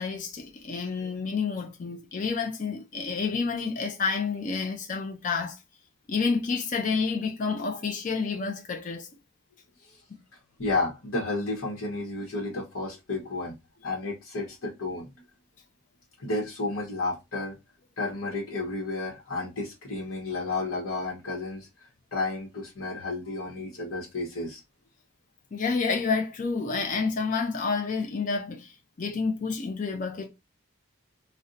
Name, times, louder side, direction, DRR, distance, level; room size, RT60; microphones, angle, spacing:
voice 1, 0.0-5.6 6.1-9.1 10.1-10.2 25.5-30.3, left 4 dB, 35° left, 0.4 m, -29 dB
voice 2, 10.6-13.6 13.8-15.1 16.2-17.6 18.0-24.6, left 2 dB, 65° left, 1.0 m, -32 dB
2.6 x 2.1 x 3.8 m
head